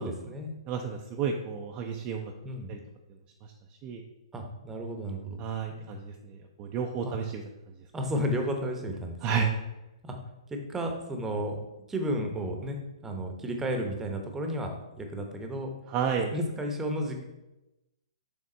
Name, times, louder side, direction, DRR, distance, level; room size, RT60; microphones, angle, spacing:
voice 1, 0.0-0.5 2.4-2.7 4.3-5.4 5.7-6.0 7.0-7.1 7.9-9.6 10.0-10.2 10.5-11.6 11.9-12.8 13.0-15.7 16.3-17.2, equal, 10° right, 3 dB, 0.8 m, -33 dB
voice 2, 0.7-2.3 2.7-2.8 3.4-3.5 3.8-4.0 5.4-7.4 9.2-9.5 15.9-16.3, right 6 dB, 30° right, 1 dB, 0.5 m, -31 dB
6.5 x 3.4 x 4.3 m, 0.97 s
hypercardioid pair, 135°, 3 cm